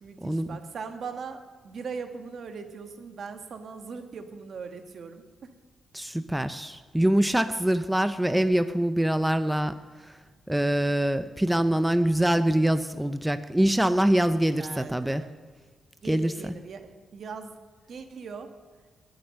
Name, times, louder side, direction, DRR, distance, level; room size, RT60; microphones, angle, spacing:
voice 1, 0.0-5.5 14.6-15.3 16.0-17.6 17.9-18.5, right 5 dB, 60° right, 7 dB, 1.5 m, -40 dB
voice 2, 5.9-9.8 10.0-10.2 10.5-15.2 16.0-16.5, right 1 dB, 5° right, 11 dB, 0.6 m, -24 dB
19.0 x 7.9 x 6.4 m, 1.5 s
cardioid pair, 80°, 0 cm